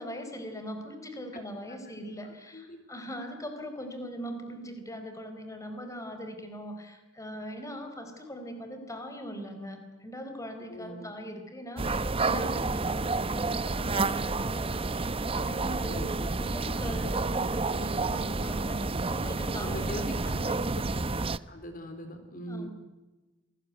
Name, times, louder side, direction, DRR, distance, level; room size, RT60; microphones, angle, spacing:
voice 1, 0.0-14.8 15.1-16.1 16.4-20.7 22.5-22.7, equal, 15° left, 6 dB, 4.5 m, -41 dB
voice 2, 2.2-3.0 10.7-11.1 15.7-16.3 19.6-20.1 21.5-22.7, equal, 45° left, 7 dB, 3.8 m, -41 dB
sound 1, 11.8-21.4, right 3 dB, 30° right, 0.8 m, -30 dB
28.0 x 20.5 x 9.5 m, 1.1 s
head